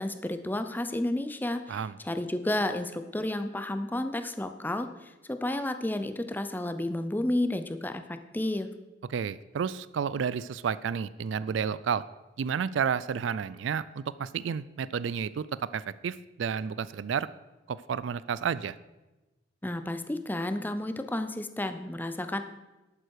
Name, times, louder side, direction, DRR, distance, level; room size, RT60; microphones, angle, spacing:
voice 1, 0.0-8.7 19.6-22.4, left 1 dB, 10° left, 9 dB, 0.6 m, -31 dB
voice 2, 9.1-12.0 12.4-17.3 17.7-18.8, right 7 dB, 75° right, 17 dB, 0.4 m, -31 dB
11.5 x 8.8 x 4.8 m, 1.1 s
head